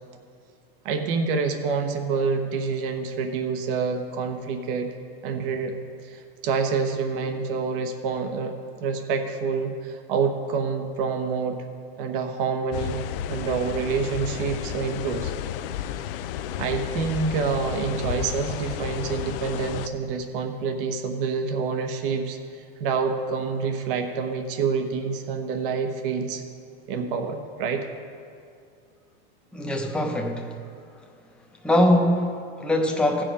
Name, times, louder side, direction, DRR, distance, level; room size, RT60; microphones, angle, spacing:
voice 1, 0.8-4.9 5.2-8.5 8.8-11.6 12.0-13.0 13.3-15.3 16.6-26.4 26.9-27.9, right 5 dB, 60° right, 5 dB, 1.1 m, -27 dB
sound 1, 12.7-19.9, left 10 dB, 65° left, 0.5 m, -32 dB
voice 2, 29.5-30.5 31.6-33.2, left 1 dB, 5° left, 1 dB, 0.8 m, -22 dB
15.5 x 5.1 x 5.0 m, 2.3 s
supercardioid pair, 130°, 30 cm